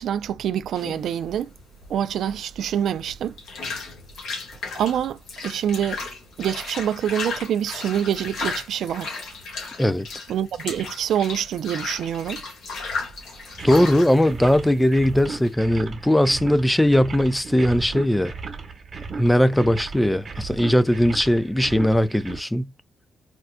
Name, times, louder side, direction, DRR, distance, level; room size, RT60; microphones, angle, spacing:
voice 1, 0.0-1.5 1.9-3.3 4.8-6.0 6.4-9.1 10.3-12.4, right 9 dB, 80° right, 0.3 m, -26 dB
sound 1, 0.7-15.5, left 4 dB, 85° left, 1.7 m, -35 dB
sound 2, 13.5-22.4, right 4 dB, 55° right, 1.2 m, -36 dB
voice 2, 13.6-18.3 19.2-22.7, equal, 10° left, 0.4 m, -19 dB
4.4 x 2.4 x 2.2 m
cardioid pair, 80°, 0 cm